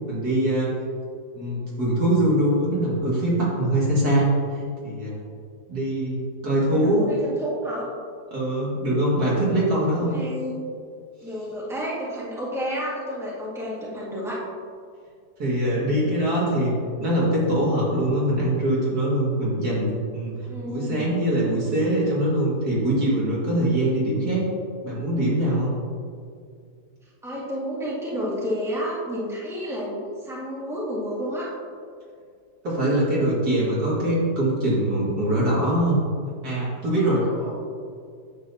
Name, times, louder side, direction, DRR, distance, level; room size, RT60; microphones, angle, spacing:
voice 1, 0.1-0.7 1.3-5.1 5.7-7.1 8.3-10.2 15.4-24.4 24.8-25.7 32.6-36.0 36.4-37.2, right 1 dB, 65° right, -7 dB, 2.6 m, -23 dB
voice 2, 6.6-7.9 9.9-10.5 11.2-14.4 20.5-21.1 27.2-31.5 36.9-37.5, equal, ahead, -7 dB, 1.8 m, -31 dB
10.0 x 7.5 x 2.8 m, 2.2 s
omnidirectional pair, 1.7 m